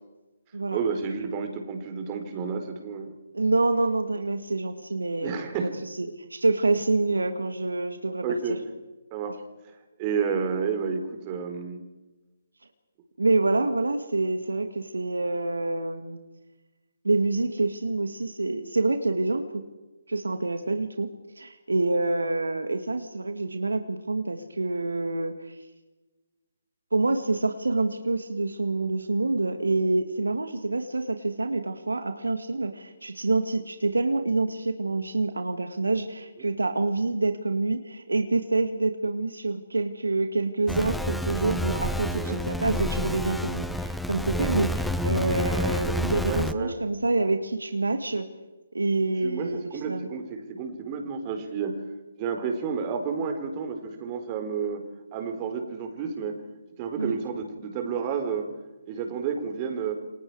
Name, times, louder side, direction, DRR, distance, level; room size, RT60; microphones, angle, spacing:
voice 1, 0.7-3.1 5.2-5.7 8.2-8.6 9.1-9.7 10.0-11.8 42.1-42.4 46.2-46.8 49.2-51.8 52.2-54.8 55.1-56.3 56.8-58.5 58.9-59.9, right 6 dB, 25° right, 4 dB, 4.4 m, -30 dB
voice 2, 3.3-5.4 6.0-8.2 13.2-16.2 17.0-19.4 20.1-21.1 21.4-25.6 26.9-48.3 48.7-50.1 57.0-57.2, right 2 dB, 80° right, 7 dB, 2.2 m, -27 dB
sound 1, 40.7-46.5, left 1 dB, ahead, 0.8 m, -29 dB
28.5 x 26.0 x 5.0 m, 1.1 s
figure-of-eight pair, 140°, 0 cm